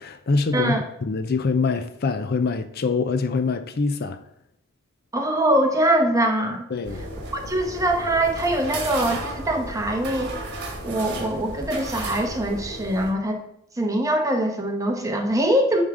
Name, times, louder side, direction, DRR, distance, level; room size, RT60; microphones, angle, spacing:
voice 1, 0.0-4.2 6.7-7.0, left 4 dB, 50° left, 0.5 m, -24 dB
voice 2, 0.5-0.8 5.1-6.7 7.3-10.3 10.8-13.4 13.8-15.8, right 1 dB, 15° right, 1.0 m, -23 dB
sound 1, 6.8-13.1, right 2 dB, 55° right, 1.4 m, -34 dB
9.2 x 3.7 x 4.8 m
head